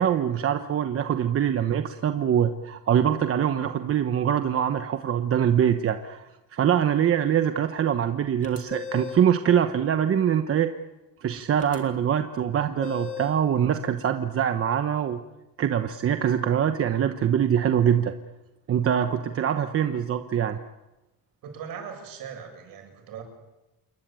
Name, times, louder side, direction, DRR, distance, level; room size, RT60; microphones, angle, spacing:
voice 1, 0.0-10.7 11.2-15.2 15.6-18.1 18.7-20.6, right 9 dB, 40° right, 8 dB, 1.1 m, -24 dB
sound 1, 8.4-9.3 11.6-11.8 12.8-13.4, left 7 dB, 20° left, 3.5 m, -37 dB
voice 2, 21.4-23.2, right 7 dB, 65° right, 4 dB, 7.9 m, -39 dB
28.5 x 23.0 x 9.1 m, 1.0 s
cardioid pair, 180°, 36 cm